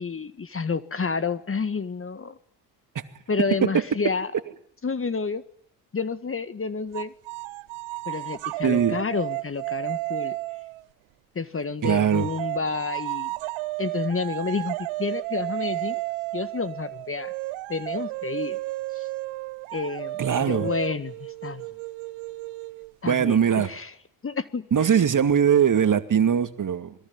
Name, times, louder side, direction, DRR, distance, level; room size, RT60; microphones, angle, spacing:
voice 1, 0.0-2.4 3.3-4.3 4.8-5.4 5.9-7.1 8.1-10.3 11.4-13.3 13.8-16.0 16.3-17.3 17.7-18.6 19.0-19.1 19.7-21.7 23.0-23.9 24.2-25.0, left 4 dB, 25° left, 1.8 m, -30 dB
sound 1, 6.9-10.9 11.8-23.1, right 22 dB, 70° right, 1.2 m, -33 dB
voice 2, 8.6-9.0 11.8-12.3 20.2-20.7 23.0-23.7 24.7-26.9, right 8 dB, 40° right, 2.4 m, -21 dB
27.0 x 22.0 x 9.8 m
hypercardioid pair, 65°, 50 cm